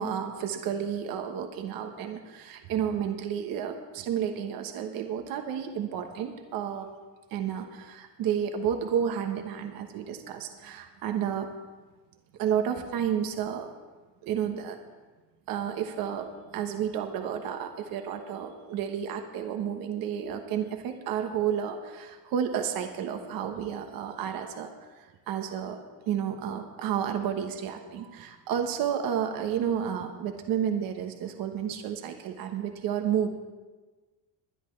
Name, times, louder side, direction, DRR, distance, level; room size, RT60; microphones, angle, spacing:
voice 1, 0.0-6.9 7.3-11.5 12.4-13.7 14.2-14.8 15.5-24.7 24.9-25.8 26.1-33.3, right 8 dB, 60° right, 5 dB, 1.2 m, -31 dB
21.0 x 11.0 x 3.3 m, 1.3 s
cardioid pair, 165°, 39 cm